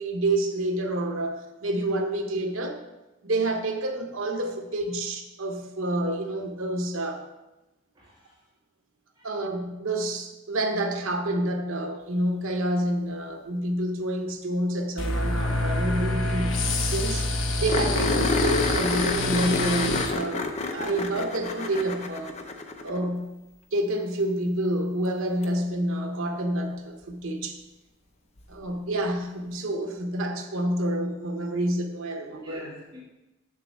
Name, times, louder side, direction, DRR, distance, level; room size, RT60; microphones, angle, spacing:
voice 1, 0.0-2.8 3.2-7.2 9.2-16.6 16.9-17.3 17.6-20.4 20.7-22.4 22.8-23.3 23.7-27.6 28.5-32.6, right 1 dB, 80° right, 4 dB, 0.9 m, -28 dB
voice 2, 7.9-8.5 9.2-9.3 32.3-33.0, left 1 dB, 20° right, -7 dB, 2.1 m, -45 dB
sound 1, 15.0-20.1, left 2 dB, 65° left, 0.8 m, -27 dB
sound 2, 16.3-16.4 16.6-16.7 17.0-17.1 17.7-23.1 25.4-25.5 28.4-28.5, left 3 dB, 30° left, 0.5 m, -28 dB
7.1 x 6.9 x 3.4 m, 1.0 s
head